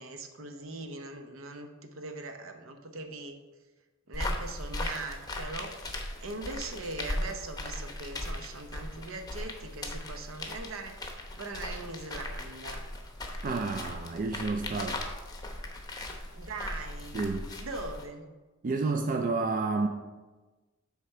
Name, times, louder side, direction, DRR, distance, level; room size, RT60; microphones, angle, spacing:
voice 1, 0.0-3.4 4.1-11.0 11.4-12.9 16.3-17.2 17.6-18.3, right 3 dB, 70° right, 6 dB, 0.8 m, -41 dB
sound 1, 4.1-18.1, left 1 dB, 20° left, 0.8 m, -38 dB
voice 2, 13.4-15.0 17.1-17.4 18.6-19.9, right 3 dB, 40° right, 4 dB, 0.4 m, -30 dB
8.2 x 3.4 x 5.5 m, 1.2 s
head